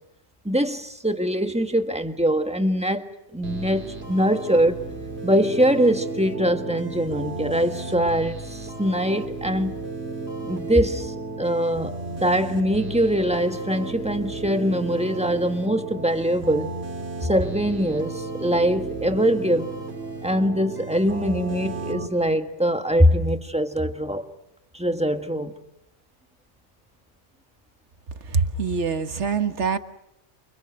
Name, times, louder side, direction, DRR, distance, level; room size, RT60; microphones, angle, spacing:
voice 1, 0.5-3.1 3.3-4.8 5.2-9.7 10.5-11.1 11.4-16.8 17.2-19.7 20.2-24.2 24.7-25.5, equal, 5° right, 1.7 m, -23 dB
sound 1, 3.4-22.1, right 3 dB, 60° right, 3.3 m, -34 dB
voice 2, 28.3-29.8, right 5 dB, 80° right, 1.7 m, -24 dB
29.5 x 28.5 x 6.5 m
omnidirectional pair, 1.2 m